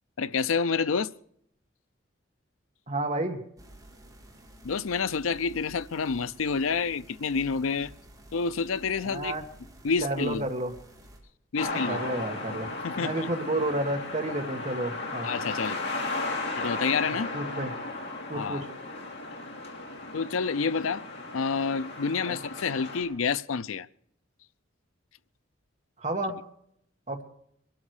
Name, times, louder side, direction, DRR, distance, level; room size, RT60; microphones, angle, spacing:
voice 1, 0.2-1.1 4.6-7.9 8.3-9.4 9.8-10.4 11.5-12.0 12.8-13.3 15.2-15.8 16.5-17.4 18.3-18.7 20.1-21.0 21.3-23.9, left 5 dB, 85° left, 0.6 m, -28 dB
voice 2, 2.9-3.4 9.0-9.4 10.0-10.7 11.6-12.7 13.0-15.3 17.3-17.7 18.3-18.7 22.3-22.4 26.0-26.4 27.1-27.2, right 1 dB, 35° right, 1.9 m, -31 dB
sound 1, 3.6-11.2, right 1 dB, 15° right, 3.9 m, -51 dB
sound 2, 11.6-23.0, left 2 dB, 55° left, 4.4 m, -35 dB
23.0 x 12.5 x 4.9 m
head